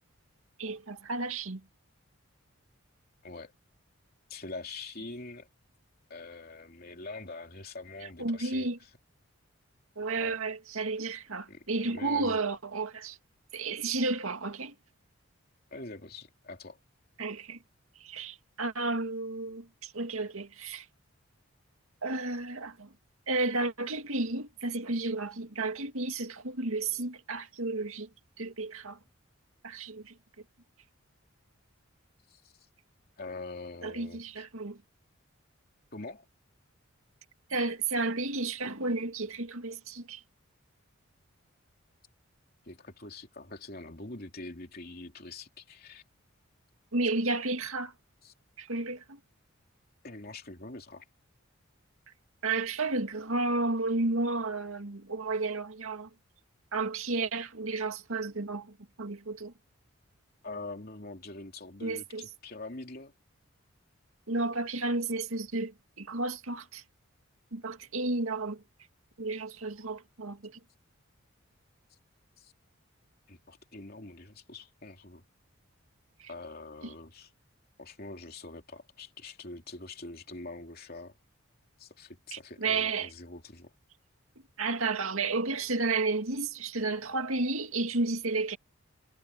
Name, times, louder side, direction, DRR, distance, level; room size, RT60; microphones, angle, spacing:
voice 1, 0.6-1.6 8.2-8.8 10.0-13.2 13.5-14.7 17.2-17.6 18.0-20.9 22.0-22.9 23.3-28.1 28.4-29.0 29.6-30.1 33.8-34.8 37.5-40.2 46.9-47.9 48.6-49.2 52.4-56.1 56.7-59.5 61.8-62.3 64.3-66.8 67.5-68.6 69.2-70.6 76.2-76.3 76.8-76.9 82.3-83.1 84.6-88.6, right 3 dB, 80° right, 2.2 m, -32 dB
voice 2, 4.3-5.5 6.1-8.7 10.2-10.4 11.5-12.4 15.7-16.8 32.3-32.5 33.2-34.4 35.9-36.3 42.6-46.0 48.2-48.3 50.0-51.0 60.4-63.1 72.4-72.5 73.3-75.2 76.3-77.3 77.8-81.2 81.8-83.7, left 2 dB, 45° left, 3.2 m, -44 dB
head